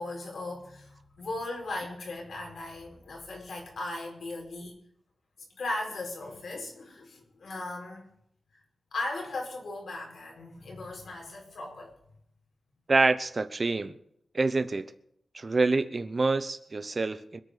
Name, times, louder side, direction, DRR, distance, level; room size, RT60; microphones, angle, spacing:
voice 1, 0.0-4.7 5.5-8.1 8.9-11.9, left 2 dB, 75° left, 4.8 m, -37 dB
voice 2, 12.9-13.9 14.3-14.9 15.3-17.4, right 3 dB, 35° right, 0.9 m, -26 dB
25.5 x 9.0 x 5.1 m
wide cardioid pair, 140°, 0 cm